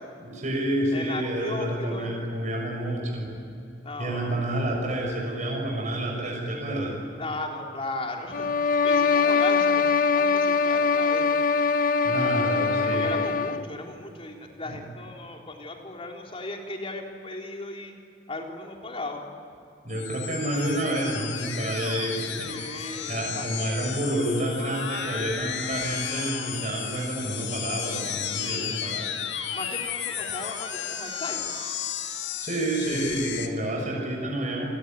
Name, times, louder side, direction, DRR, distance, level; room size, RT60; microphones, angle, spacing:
voice 1, 0.2-3.3 4.0-7.0 12.0-13.1 14.7-14.8 19.8-22.5 22.8-29.1 32.4-34.7, right 1 dB, 40° right, -1 dB, 6.6 m, -29 dB
voice 2, 0.9-2.2 3.8-4.5 7.2-11.3 12.9-17.9 18.3-19.3 22.5-23.5 29.5-31.5, left 2 dB, 30° left, 1 dB, 3.7 m, -36 dB
sound 1, 8.3-13.7, left 5 dB, 50° left, 1.0 m, -23 dB
sound 2, 19.9-33.5, left 8 dB, 75° left, 2.1 m, -33 dB
28.5 x 20.5 x 9.4 m, 2.8 s
head